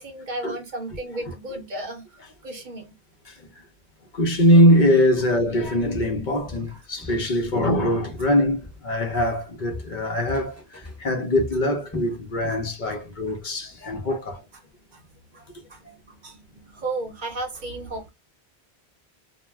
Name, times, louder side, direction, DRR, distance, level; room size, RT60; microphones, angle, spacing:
voice 1, 0.0-2.9 6.7-6.8 12.5-12.6 12.9-13.0 13.3-13.4 14.1-14.2 14.9-15.1 15.3-18.1, right 2 dB, 55° right, 0.7 m, -35 dB
voice 2, 4.1-14.4, equal, 55° left, 0.8 m, -22 dB
Walk footsteps, 5.3-5.6 5.9-7.3 7.6-8.9 9.2-12.7 13.0-13.2 13.7-13.8, left 2 dB, 15° left, 0.8 m, -39 dB
2.3 x 2.2 x 3.2 m
omnidirectional pair, 1.1 m